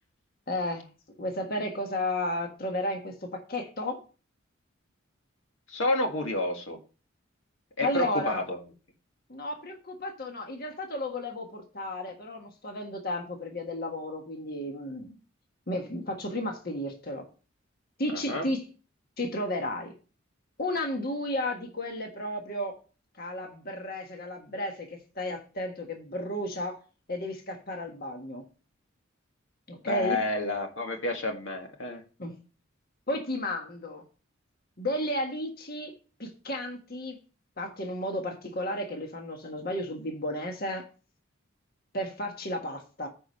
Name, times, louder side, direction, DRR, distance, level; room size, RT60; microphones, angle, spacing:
voice 1, 0.5-0.9 1.2-4.0 7.8-8.4 9.3-15.1 15.7-17.3 18.0-18.7 19.2-19.9 20.6-22.8 23.2-26.8 27.1-28.4 29.7-30.2 32.2-32.4 33.1-34.0 34.8-35.9 36.2-37.2 37.6-40.9 41.9-43.1, left 1 dB, 50° left, 1.5 m, -33 dB
voice 2, 5.7-6.8 7.8-8.6 18.1-18.5 29.9-32.0, left 2 dB, 70° left, 1.7 m, -30 dB
9.8 x 4.8 x 5.6 m
head